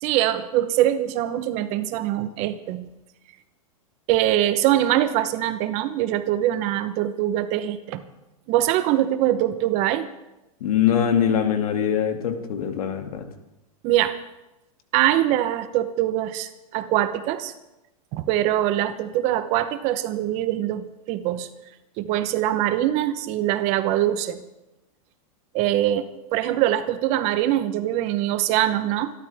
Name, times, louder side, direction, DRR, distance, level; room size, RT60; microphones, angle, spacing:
voice 1, 0.0-2.9 4.1-8.0 8.5-10.1 13.8-14.2 14.9-17.5 18.1-21.5 22.0-24.4 25.5-29.1, right 13 dB, 35° right, 11 dB, 1.0 m, -23 dB
voice 2, 10.6-13.3, left 9 dB, 75° left, 5 dB, 2.4 m, -22 dB
25.5 x 12.5 x 3.6 m, 0.96 s
supercardioid pair, 150°, 19 cm